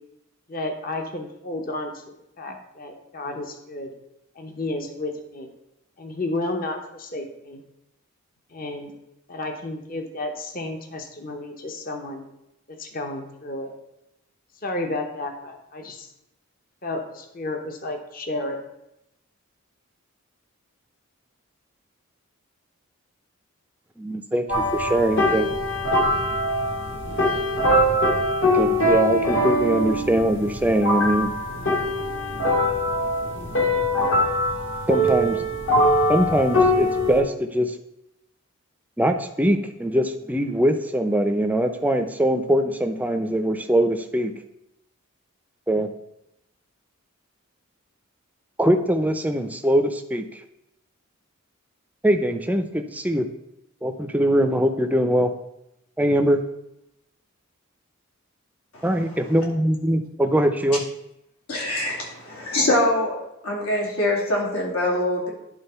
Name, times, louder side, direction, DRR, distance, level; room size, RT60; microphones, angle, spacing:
voice 1, 0.5-2.0 2.4-3.9 4.4-5.5 6.0-7.6 8.5-8.9 9.3-12.2 12.7-13.7 14.6-16.1 16.8-18.6, left 2 dB, 40° left, 4 dB, 0.8 m, -32 dB
voice 2, 24.0-24.5 24.7-25.5 28.5-31.3 34.9-35.4 36.1-37.8 39.0-44.3 45.7-45.9 48.6-50.4 52.0-53.3 53.8-55.3 56.0-56.4 58.8-60.8, right 1 dB, 5° right, 7 dB, 0.5 m, -22 dB
sound 1, 24.5-37.2, left 1 dB, 60° left, 1.5 m, -22 dB
voice 3, 61.5-63.2 63.4-65.3, left 1 dB, 80° left, -2 dB, 2.6 m, -24 dB
11.0 x 3.7 x 5.5 m, 0.86 s
head